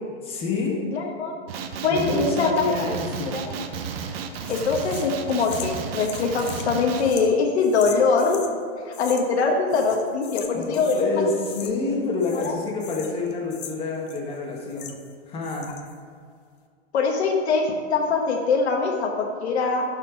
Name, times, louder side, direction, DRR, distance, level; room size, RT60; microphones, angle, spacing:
voice 1, 0.2-0.8 1.9-3.4 10.5-14.9 15.3-15.7, left 3 dB, 20° left, -1 dB, 1.4 m, -28 dB
voice 2, 0.9-1.3 1.8-2.6 3.3-3.7 4.5-8.4 8.8-11.3 12.3-12.5 16.9-19.8, left 4 dB, 90° left, 1 dB, 1.2 m, -23 dB
Male speech man speaking, 1.5-7.1, right 6 dB, 70° right, 0.9 m, -33 dB
sound 1, 4.4-8.5 8.9-9.4 9.7-11.1 11.4-11.9 12.2-15.1 15.4-16.0, left 9 dB, 55° left, 0.8 m, -41 dB
11.5 x 4.4 x 5.0 m, 2.1 s
supercardioid pair, 150°, 32 cm